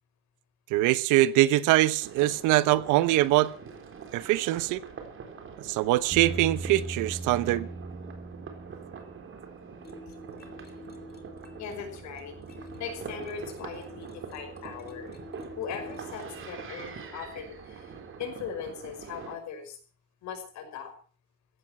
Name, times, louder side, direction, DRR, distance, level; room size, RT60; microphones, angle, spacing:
voice 1, 0.7-3.5 4.1-4.8 5.6-7.7, right 16 dB, 80° right, 1.0 m, -23 dB
sound 1, 2.0-19.4, right 6 dB, 40° right, 3.9 m, -44 dB
sound 2, 6.1-18.6, right 2 dB, 15° right, 5.1 m, -43 dB
sound 3, 9.8-16.4, left 1 dB, 30° left, 3.1 m, -48 dB
voice 2, 11.6-12.3 12.7-15.2 15.6-19.8 20.2-20.9, left 7 dB, 65° left, 5.7 m, -39 dB
16.0 x 12.5 x 6.1 m
cardioid pair, 120°, 30 cm